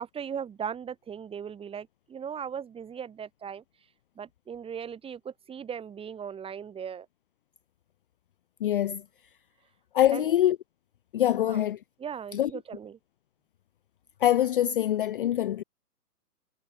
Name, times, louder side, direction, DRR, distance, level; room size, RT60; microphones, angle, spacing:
voice 1, 0.0-3.6 4.2-7.1 10.1-10.4 11.3-11.7 12.0-13.0, right 7 dB, 10° right, 3.8 m, -38 dB
voice 2, 8.6-9.0 9.9-10.6 11.1-11.8 12.4-12.5 14.2-15.6, left 12 dB, 35° left, 0.7 m, -24 dB
figure-of-eight pair, 125°, 48 cm